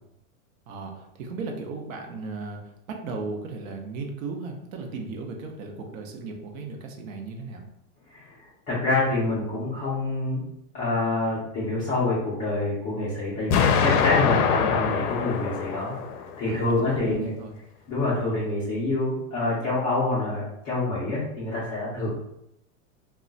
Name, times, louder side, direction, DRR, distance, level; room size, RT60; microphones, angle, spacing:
voice 1, 0.7-7.6 16.5-17.5 21.9-22.1, right 3 dB, 60° right, 2 dB, 0.8 m, -36 dB
voice 2, 8.7-10.4 10.7-16.0 16.4-17.3 17.9-22.1, left 2 dB, 20° left, -9 dB, 0.4 m, -26 dB
Explosion, 13.5-16.5, left 7 dB, 75° left, 0.5 m, -23 dB
2.2 x 2.1 x 3.8 m, 0.83 s
supercardioid pair, 150°, 45 cm